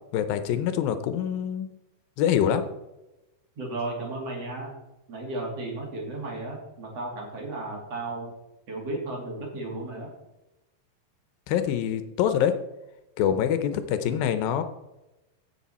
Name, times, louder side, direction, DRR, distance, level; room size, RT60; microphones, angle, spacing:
voice 1, 0.1-1.7 2.2-2.6 11.5-12.5 13.2-14.6, left 9 dB, 80° left, 10 dB, 2.5 m, -25 dB
voice 2, 3.6-4.7 5.1-8.3 8.7-10.1, right 2 dB, 45° right, -1 dB, 3.3 m, -34 dB
15.5 x 6.8 x 4.3 m, 0.97 s
omnidirectional pair, 4.1 m